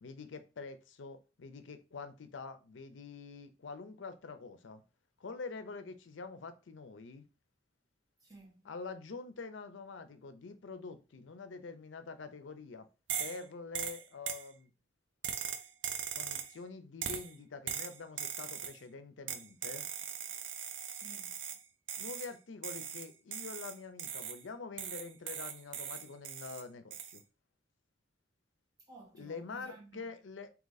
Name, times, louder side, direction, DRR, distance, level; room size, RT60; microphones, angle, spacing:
voice 1, 0.0-4.8 5.2-7.2 8.6-12.9 13.2-14.7 16.1-19.8 22.0-27.2 29.2-30.5, left 4 dB, 85° left, 0.5 m, -46 dB
voice 2, 8.2-8.7 20.9-21.6 28.9-30.1, right 2 dB, 20° right, 1.5 m, -55 dB
sound 1, 13.1-13.4 13.7-14.5 15.2-16.6 17.0-17.3 17.7-18.8 19.3-21.6 21.9-22.3 22.6-24.4 24.8-26.6 26.9-27.2, right 8 dB, 85° right, 0.5 m, -40 dB
3.7 x 2.9 x 3.9 m
head